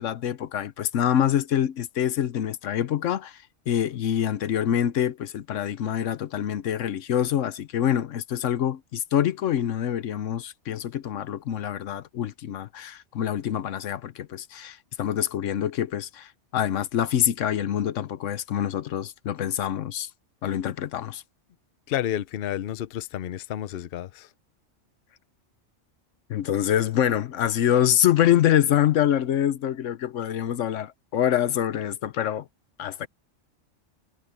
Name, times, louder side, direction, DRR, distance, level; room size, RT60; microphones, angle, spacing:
voice 1, 0.0-3.4 3.7-20.1 20.4-21.2 26.3-32.5 32.8-33.1, left 10 dB, 85° left, 1.1 m, -25 dB
voice 2, 21.9-24.3, left 11 dB, 60° left, 0.8 m, -30 dB
omnidirectional pair, 1.3 m